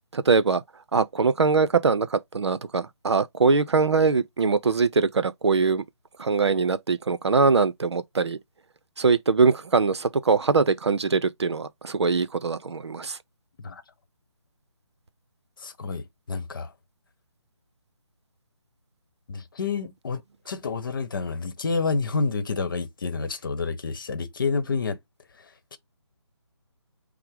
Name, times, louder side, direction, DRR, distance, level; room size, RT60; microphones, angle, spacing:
voice 1, 0.1-0.6 0.9-5.8 6.2-8.4 9.0-13.2, right 4 dB, 65° right, 0.6 m, -22 dB
voice 2, 15.6-16.7 19.3-25.0 25.4-25.8, left 4 dB, 45° left, 1.0 m, -29 dB
5.6 x 2.1 x 3.6 m
figure-of-eight pair, 150°, 15 cm